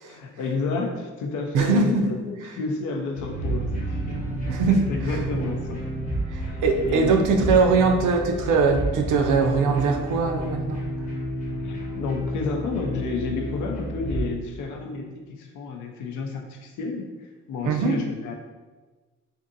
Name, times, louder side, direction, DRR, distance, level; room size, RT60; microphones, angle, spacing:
voice 1, 0.0-4.4 4.7-5.8 6.4-7.7 11.6-18.3, left 4 dB, 75° left, 2 dB, 0.5 m, -31 dB
voice 2, 1.5-2.0 4.5-5.2 6.3-10.8 17.6-18.0, right 4 dB, 80° right, 4 dB, 0.5 m, -21 dB
sound 1, 3.1-14.2, right 1 dB, 25° left, 0.9 m, -30 dB
2.5 x 2.5 x 2.6 m, 1.3 s
cardioid pair, 90°, 30 cm